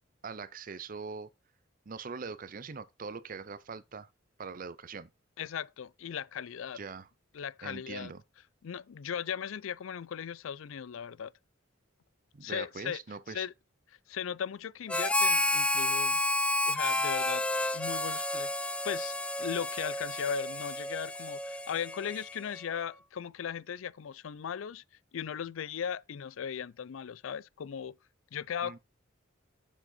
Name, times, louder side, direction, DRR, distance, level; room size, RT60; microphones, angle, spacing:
voice 1, 0.2-1.3 1.9-4.1 4.4-5.1 6.7-7.1 7.6-8.2 12.3-13.5 28.6-28.8, right 5 dB, 45° right, 0.6 m, -42 dB
voice 2, 5.4-6.8 7.3-8.1 8.6-11.3 12.4-13.0 13.3-13.5 13.9-16.2 16.7-17.4 17.7-24.8 25.1-28.0 28.3-28.8, left 8 dB, 85° left, 0.4 m, -37 dB
Harmonica, 14.9-22.6, left 2 dB, 5° left, 0.5 m, -31 dB
7.0 x 6.9 x 4.2 m
head